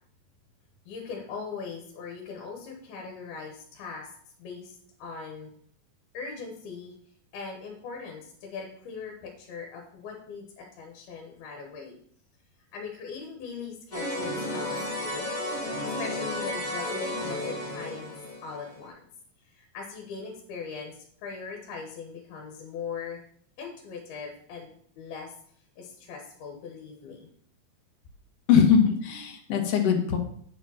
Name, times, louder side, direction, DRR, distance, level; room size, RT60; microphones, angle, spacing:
voice 1, 0.9-4.1 4.4-5.5 6.1-6.9 7.3-12.0 12.7-15.3 16.0-18.1 18.4-19.0 19.4-23.2 23.6-25.3 25.8-27.3, left 5 dB, 75° left, 1 dB, 3.1 m, -40 dB
sound 1, 13.9-18.8, left 1 dB, 15° left, 1.6 m, -33 dB
voice 2, 28.5-30.2, left 7 dB, 60° left, 3 dB, 1.8 m, -21 dB
9.0 x 5.1 x 5.7 m, 0.62 s
omnidirectional pair, 4.5 m